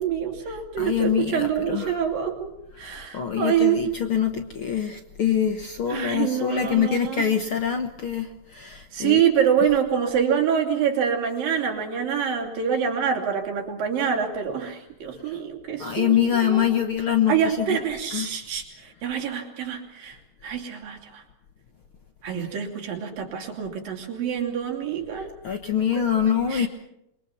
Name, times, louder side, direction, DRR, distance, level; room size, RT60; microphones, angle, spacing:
voice 1, 0.0-3.8 5.9-7.3 8.9-16.8 17.3-20.2 20.4-21.2 22.2-25.3 26.0-26.1 26.5-26.7, right 8 dB, 85° right, 2 dB, 4.6 m, -26 dB
voice 2, 0.8-1.9 2.8-2.9 3.1-9.2 15.3-15.4 15.8-17.8 18.1-18.3 22.3-22.4 25.1-26.7, left 9 dB, 60° left, 6 dB, 1.4 m, -25 dB
26.5 x 23.0 x 5.9 m, 0.83 s
omnidirectional pair, 3.9 m